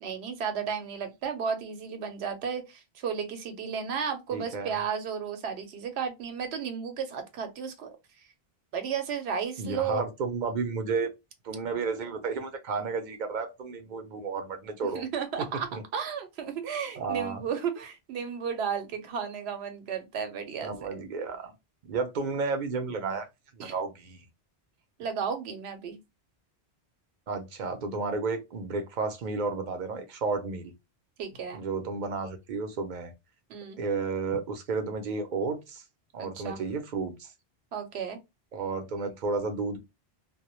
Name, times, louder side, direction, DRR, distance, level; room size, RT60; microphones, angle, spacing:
voice 1, 0.0-7.9 8.7-10.1 14.9-15.7 15.9-21.1 23.6-23.7 25.0-26.0 31.2-31.6 33.5-33.8 36.2-36.6 37.7-38.2, right 6 dB, 85° right, 0.9 m, -33 dB
voice 2, 4.3-4.8 9.6-11.1 11.4-15.0 15.7-15.8 17.0-17.4 20.6-21.5 21.8-23.3 23.5-24.2 27.3-30.7 31.5-33.1 33.8-35.8 36.1-37.3 38.5-39.8, right 4 dB, 55° right, 0.6 m, -32 dB
2.1 x 2.1 x 2.9 m
omnidirectional pair, 1.1 m